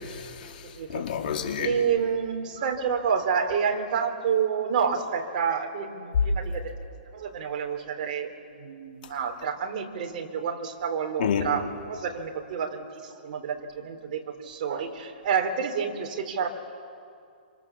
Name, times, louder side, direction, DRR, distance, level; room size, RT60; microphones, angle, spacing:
voice 1, 0.0-1.8 11.2-11.5, left 8 dB, 55° left, 3.6 m, -30 dB
voice 2, 0.7-1.1 1.6-6.7 7.1-16.5, right 6 dB, 45° right, 3.5 m, -29 dB
27.0 x 26.0 x 7.3 m
hypercardioid pair, 155°, 6 cm